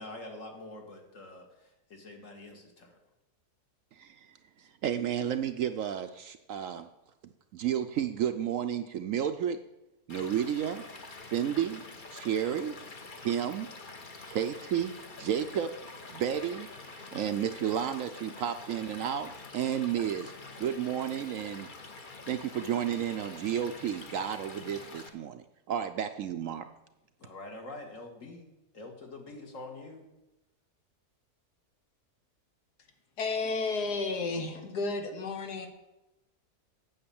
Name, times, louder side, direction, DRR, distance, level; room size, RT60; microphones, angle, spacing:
voice 1, 0.0-3.0 27.2-28.5 28.7-30.1, left 2 dB, 55° left, 3 dB, 2.0 m, -45 dB
voice 2, 3.9-6.9 7.5-9.6 10.1-10.8 11.2-11.8 12.1-12.8 13.2-13.7 14.3-15.7 16.1-16.7 17.1-20.3 20.6-21.7 22.3-26.7, right 9 dB, 70° right, 8 dB, 0.8 m, -32 dB
Stream / Liquid, 10.1-25.1, left 3 dB, 35° left, 1.0 m, -46 dB
voice 3, 33.2-35.7, left 3 dB, 80° left, 6 dB, 1.8 m, -32 dB
8.9 x 7.5 x 7.0 m, 0.95 s
omnidirectional pair, 1.7 m